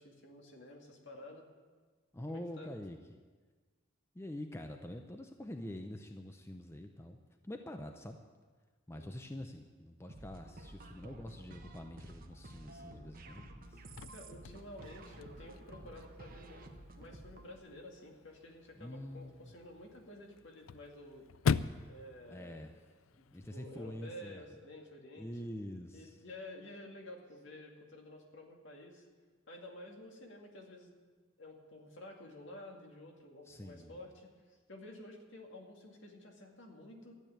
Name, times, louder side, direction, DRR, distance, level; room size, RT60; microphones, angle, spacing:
voice 1, 0.0-1.5 2.3-2.7 8.9-9.2 12.8-13.2 14.1-16.6 17.0-21.3 21.9-22.8 23.2-23.3 23.5-25.3 25.9-29.1 29.5-30.9 31.4-37.1, left 1 dB, 65° left, 1 dB, 2.3 m, -51 dB
voice 2, 2.1-3.0 4.1-7.2 7.4-8.2 8.9-13.8 18.8-19.5 22.3-22.7 23.3-24.4 25.2-26.1 33.5-34.0, left 1 dB, 15° left, 5 dB, 0.6 m, -45 dB
sound 1, 10.1-17.5, right 1 dB, 45° right, 1.1 m, -52 dB
Chirp tweet / Car / Slam, 13.6-23.6, left 5 dB, 80° left, 0.4 m, -41 dB
13.0 x 8.7 x 9.0 m, 1.4 s
head